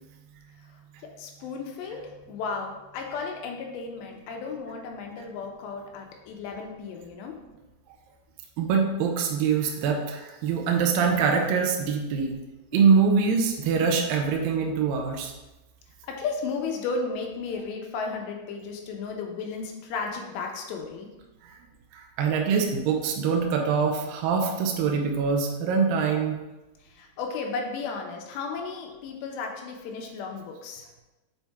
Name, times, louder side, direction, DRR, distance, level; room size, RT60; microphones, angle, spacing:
voice 1, 1.2-2.0 2.3-7.3 12.7-12.8 16.1-21.1 26.8-30.9, left 4 dB, 90° left, 2 dB, 3.0 m, -34 dB
voice 2, 8.6-12.4 12.7-15.3 21.4-21.5 21.9-26.4, right 5 dB, 80° right, 2 dB, 2.1 m, -24 dB
7.2 x 3.5 x 4.2 m, 1.0 s
omnidirectional pair, 4.9 m